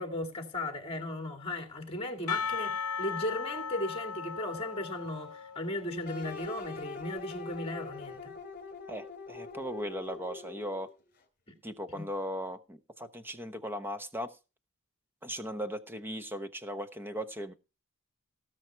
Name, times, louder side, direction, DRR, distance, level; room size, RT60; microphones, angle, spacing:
voice 1, 0.0-8.4 11.5-11.6 11.9-12.1, left 1 dB, 25° left, 2.4 m, -36 dB
Percussion, 2.3-6.2, left 6 dB, 85° left, 0.8 m, -37 dB
sound 1, 6.0-11.0, left 4 dB, 40° left, 3.5 m, -43 dB
voice 2, 8.9-10.9 11.6-14.3 15.2-17.5, equal, 10° right, 0.9 m, -38 dB
18.0 x 6.5 x 4.6 m
head